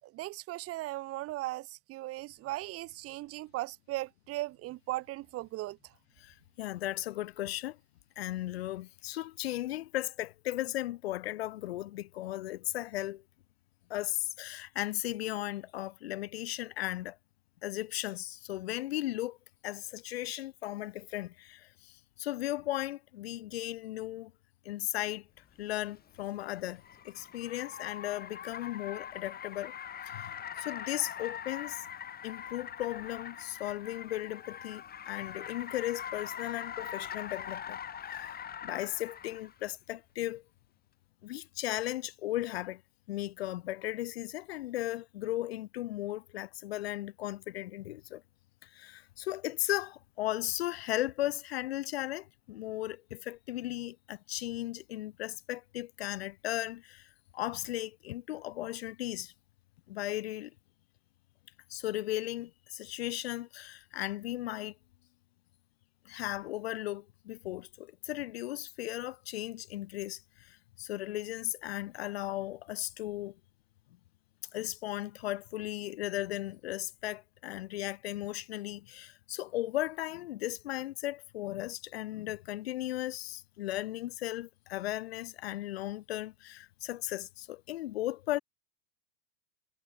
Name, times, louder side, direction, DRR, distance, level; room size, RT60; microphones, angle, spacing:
voice 1, 0.0-5.8, right 18 dB, 45° right, 5.6 m, -38 dB
voice 2, 6.2-7.8 8.2-13.2 13.9-17.2 17.6-19.4 19.6-21.9 22.2-24.3 24.6-25.3 25.6-29.7 30.1-30.3 30.6-31.8 32.2-40.4 41.2-42.8 43.1-48.2 48.6-59.3 59.9-60.5 61.7-64.7 66.0-73.3 74.5-88.4, left 15 dB, 70° left, 2.8 m, -36 dB
Car, 25.6-39.5, left 8 dB, 30° left, 7.3 m, -43 dB
hypercardioid pair, 95°, 32 cm